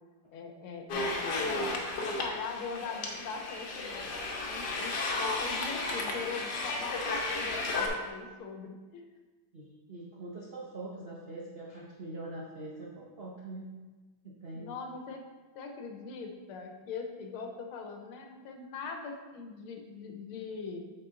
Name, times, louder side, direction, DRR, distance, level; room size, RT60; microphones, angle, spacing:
voice 1, 0.3-4.1 4.4-9.1 14.5-15.3 15.5-20.8, left 5 dB, 85° left, 4 dB, 1.7 m, -41 dB
sound 1, 0.9-7.9, left 2 dB, 60° left, 1.3 m, -33 dB
voice 2, 9.5-13.7 14.2-14.7, right 2 dB, 70° right, -4 dB, 0.5 m, -43 dB
7.7 x 4.4 x 3.7 m, 1.3 s
omnidirectional pair, 2.3 m